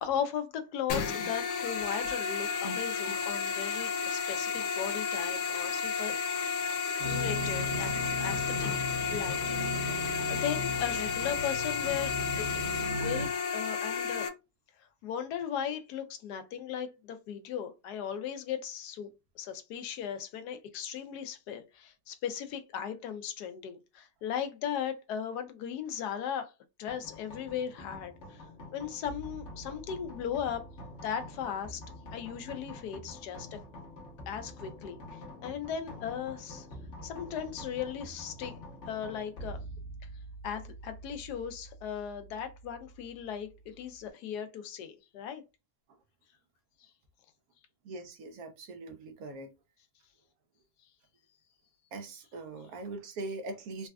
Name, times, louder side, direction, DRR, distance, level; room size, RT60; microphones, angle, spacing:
voice 1, 0.0-6.2 7.0-7.9 8.2-8.7 9.1-12.5 13.0-14.3 15.0-19.1 19.4-26.5 26.8-28.4 28.7-30.7 31.0-31.8 32.1-33.6 34.3-36.7 37.0-38.6 38.9-39.6 40.4-45.4, left 8 dB, 75° left, 1.1 m, -37 dB
sound 1, 0.9-14.3, left 6 dB, 90° left, 1.4 m, -32 dB
sound 2, 7.0-13.3, left 1 dB, 85° right, 1.8 m, -37 dB
sound 3, 26.9-44.1, equal, 45° left, 1.2 m, -47 dB
voice 2, 47.8-49.5 51.9-53.9, right 2 dB, 65° right, 1.1 m, -41 dB
4.1 x 2.3 x 2.3 m
omnidirectional pair, 1.8 m